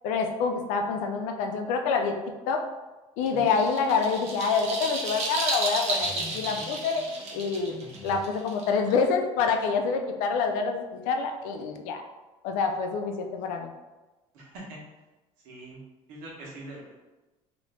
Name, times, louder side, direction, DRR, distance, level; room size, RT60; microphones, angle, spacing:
voice 1, 0.0-2.2 2.5-2.7 3.2-7.0 7.3-12.0 12.4-13.7, left 5 dB, 85° left, 4 dB, 0.5 m, -27 dB
sound 1, 3.3-9.1, right 2 dB, 55° right, 0.8 m, -32 dB
sound 2, 6.0-8.4, left 1 dB, 20° right, 0.9 m, -45 dB
voice 2, 14.3-14.8 15.4-15.8 16.1-16.9, right 1 dB, 85° right, -4 dB, 1.2 m, -43 dB
2.9 x 2.6 x 3.4 m, 1.1 s
cardioid pair, 115°, 13 cm